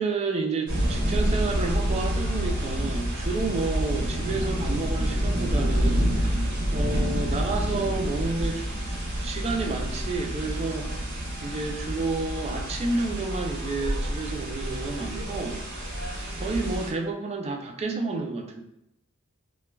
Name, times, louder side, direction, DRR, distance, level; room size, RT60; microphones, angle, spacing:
voice 1, 0.0-6.4 6.7-8.7 8.9-10.9 11.4-15.6 16.4-18.6, right 3 dB, 30° right, 3 dB, 0.3 m, -30 dB
sound 1, 0.7-16.9, equal, 60° right, 0.7 m, -28 dB
2.2 x 2.1 x 3.1 m, 0.79 s
head